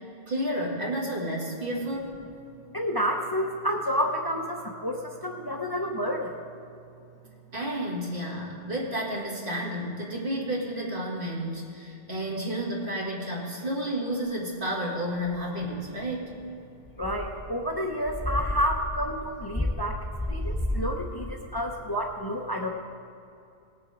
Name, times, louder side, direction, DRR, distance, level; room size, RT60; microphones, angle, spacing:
voice 1, 0.3-2.2 7.5-16.3, equal, 55° right, -3 dB, 2.3 m, -31 dB
voice 2, 2.7-6.4 17.0-20.0 20.3-22.7, equal, 25° left, 1 dB, 0.7 m, -29 dB
sound 1, 15.3-15.4 16.8-17.4 17.8-17.9 18.0-20.9, left 1 dB, 10° left, 1.6 m, -31 dB
18.5 x 7.0 x 4.9 m, 2.6 s
omnidirectional pair, 1.0 m